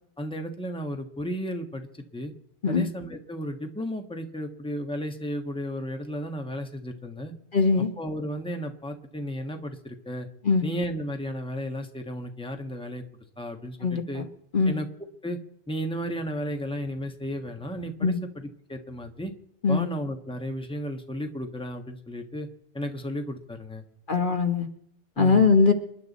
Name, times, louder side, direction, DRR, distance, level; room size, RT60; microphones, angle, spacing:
voice 1, 0.2-2.3 2.7-7.3 8.0-10.3 10.6-13.0 13.4-14.3 14.6-14.9 15.2-15.4 15.7-19.3 19.7-22.5 22.7-23.8 25.2-25.5, equal, 5° left, 4 dB, 1.3 m, -33 dB
voice 2, 7.5-7.9 10.4-10.7 13.8-14.0 14.5-14.8 18.0-18.2 19.6-19.9 24.1-24.7 25.2-25.7, left 4 dB, 50° left, 6 dB, 1.3 m, -21 dB
28.5 x 11.0 x 4.1 m, 0.76 s
omnidirectional pair, 1.1 m